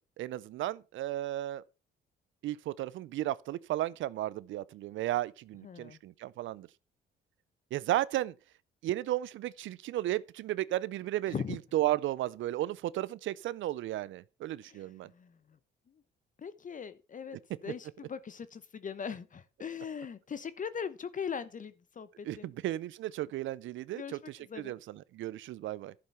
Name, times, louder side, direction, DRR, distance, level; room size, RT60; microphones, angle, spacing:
voice 1, 0.2-1.6 2.4-6.7 7.7-8.3 8.8-15.1 22.2-25.9, right 14 dB, 75° right, 0.5 m, -34 dB
voice 2, 5.6-6.0 11.3-11.6 14.7-14.9 15.1-15.4 16.4-17.4 17.6-22.5 23.9-24.2 24.5-24.8, left 7 dB, 40° left, 0.9 m, -40 dB
11.5 x 6.8 x 5.7 m
cardioid pair, 90°, 20 cm